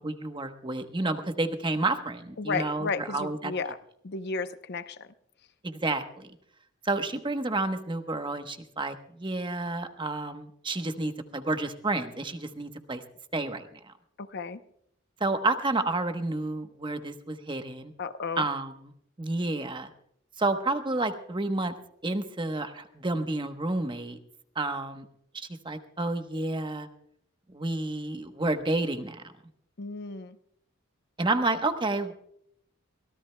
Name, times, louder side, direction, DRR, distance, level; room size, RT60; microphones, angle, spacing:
voice 1, 0.0-3.5 5.6-6.4 6.8-13.0 13.3-13.9 15.2-17.9 18.4-18.8 19.2-19.9 20.4-21.7 22.0-24.2 24.6-25.1 25.3-26.9 27.5-29.3 31.2-32.1, right 2 dB, 25° right, 7 dB, 1.0 m, -30 dB
voice 2, 2.4-3.8 4.0-5.1 14.2-14.6 18.0-18.5 29.8-30.4, left 4 dB, 55° left, 11 dB, 0.7 m, -33 dB
24.0 x 17.5 x 2.2 m, 0.70 s
head